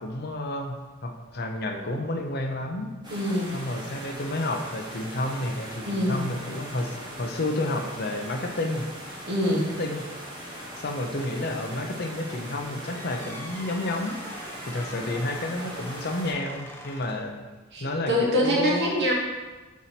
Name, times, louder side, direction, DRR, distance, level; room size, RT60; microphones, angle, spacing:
voice 1, 0.0-2.9 3.5-8.9 9.6-10.1 10.8-14.2 14.7-17.5 17.8-18.9, left 1 dB, 50° left, 3 dB, 0.7 m, -30 dB
sound 1, 3.0-16.3, equal, 20° right, 1.1 m, -40 dB
voice 2, 3.1-3.5 5.8-6.2 9.3-9.7 17.7-19.1, equal, 55° right, -3 dB, 1.4 m, -25 dB
sound 2, 12.9-17.4, left 1 dB, 10° left, 0.6 m, -44 dB
4.8 x 4.1 x 5.8 m, 1.2 s
head